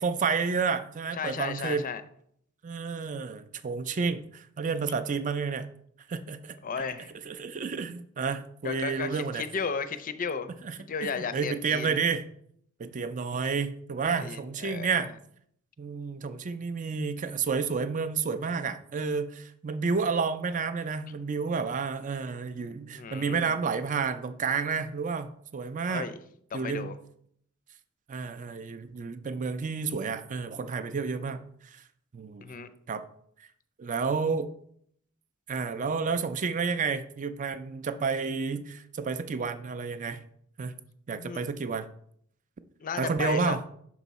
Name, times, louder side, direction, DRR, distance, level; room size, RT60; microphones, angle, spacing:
voice 1, 0.0-1.9 2.6-5.7 6.1-6.6 7.3-9.4 10.6-12.2 12.8-15.1 15.8-26.1 26.5-26.9 28.1-31.8 32.1-32.5 32.9-33.0 33.8-34.5 35.5-40.2 40.6-40.7 41.1-41.9 43.0-43.6, right 5 dB, 35° right, 11 dB, 0.4 m, -30 dB
voice 2, 1.2-2.0 6.6-7.1 8.6-10.5 10.8-12.0 14.0-14.9 22.9-23.5 25.9-26.2 26.5-27.0 32.4-32.7 41.1-41.4 42.8-43.6, left 5 dB, 40° left, 11 dB, 0.5 m, -34 dB
6.0 x 4.6 x 4.1 m, 0.67 s
head